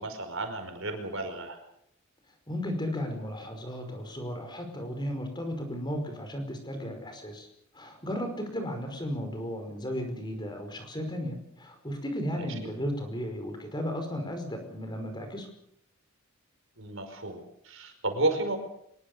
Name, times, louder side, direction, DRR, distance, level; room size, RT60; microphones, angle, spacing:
voice 1, 0.0-1.6 12.3-12.7 16.8-18.6, right 2 dB, 60° right, 6 dB, 5.2 m, -32 dB
voice 2, 2.5-7.5 7.7-15.5, equal, 20° left, 5 dB, 5.1 m, -35 dB
25.0 x 22.0 x 6.8 m, 0.72 s
head